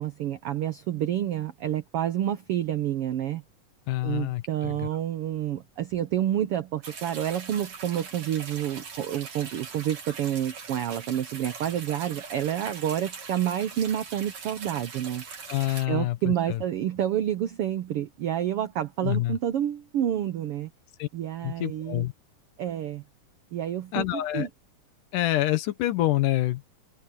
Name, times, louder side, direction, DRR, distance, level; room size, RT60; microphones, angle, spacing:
voice 1, 0.0-3.4 4.0-15.2 15.9-20.7 21.1-22.0 22.6-23.0 23.5-24.5, right 11 dB, 80° right, 1.3 m, -29 dB
voice 2, 3.9-4.9 15.5-16.6 19.0-19.4 21.0-21.1 21.4-22.1 23.9-24.5 25.1-26.6, left 15 dB, 75° left, 2.6 m, -27 dB
sound 1, 6.8-15.9, right 5 dB, 55° right, 4.3 m, -41 dB
omnidirectional pair, 3.8 m